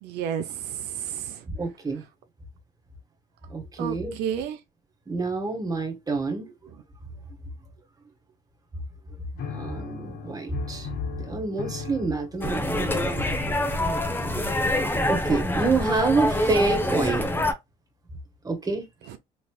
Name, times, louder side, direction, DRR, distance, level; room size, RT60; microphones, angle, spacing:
voice 1, 0.0-1.4 3.8-4.6 19.1-19.2, right 9 dB, 85° right, 0.6 m, -31 dB
voice 2, 1.4-2.0 3.5-4.1 5.1-6.5 9.5-10.9 11.2-13.4 15.0-17.2 18.4-18.8, right 3 dB, 20° right, 1.4 m, -27 dB
sound 1, 9.4-15.8, left 6 dB, 70° left, 1.6 m, -40 dB
sound 2, 12.4-17.5, left 1 dB, 10° left, 0.8 m, -25 dB
3.9 x 3.2 x 2.3 m
cardioid pair, 110°, 17 cm